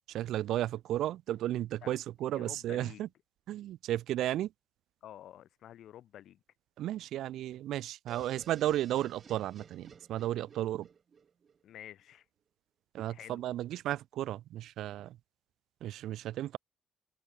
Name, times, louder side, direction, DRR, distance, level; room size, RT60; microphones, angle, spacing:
voice 1, 0.1-3.1 3.5-4.5 6.8-10.9 12.9-15.2 15.8-16.6, right 13 dB, 65° right, 1.4 m, -34 dB
voice 2, 2.3-3.0 5.0-6.4 11.6-12.2 13.1-13.4, left 11 dB, 55° left, 5.0 m, -50 dB
sound 1, 8.1-11.8, right 6 dB, 30° right, 4.1 m, -55 dB
cardioid pair, 180°, 0 cm